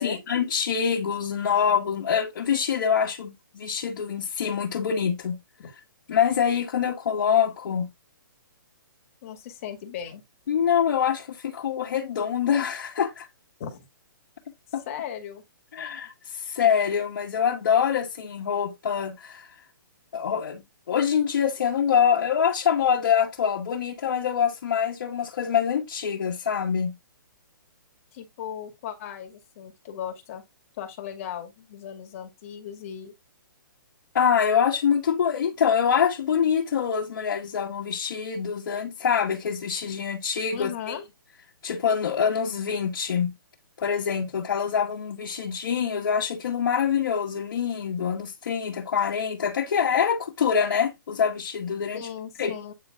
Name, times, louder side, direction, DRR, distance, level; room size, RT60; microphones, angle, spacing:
voice 1, 0.0-5.3 6.1-7.9 10.5-13.3 14.7-14.8 15.7-19.5 20.1-26.9 34.1-41.0 41.6-43.3 43.8-52.1 52.4-52.5, left 7 dB, 60° left, 1.9 m, -25 dB
voice 2, 9.2-10.2 13.6-13.9 14.9-15.4 28.1-30.4 30.8-33.1 40.5-41.0 51.9-52.7, left 9 dB, 40° left, 2.1 m, -37 dB
9.0 x 3.8 x 3.6 m
hypercardioid pair, 150°, 11 cm